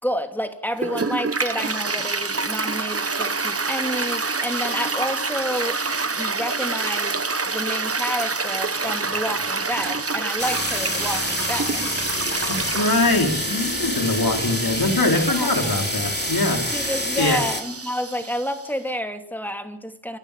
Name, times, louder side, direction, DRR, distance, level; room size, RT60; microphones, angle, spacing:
voice 1, 0.0-5.8 6.1-11.9 15.3-15.5 16.7-20.2, equal, 5° left, 6 dB, 2.8 m, -29 dB
Toilet flush, 0.8-18.7, right 4 dB, 35° right, 1.1 m, -27 dB
sound 1, 10.4-17.6, left 1 dB, 25° left, 3.7 m, -28 dB
sound 2, 11.2-16.4, right 1 dB, 10° right, 7.8 m, -42 dB
voice 2, 12.4-17.4, left 2 dB, 55° left, 2 dB, 4.6 m, -23 dB
27.5 x 12.5 x 8.6 m, 0.72 s
wide cardioid pair, 45°, 42 cm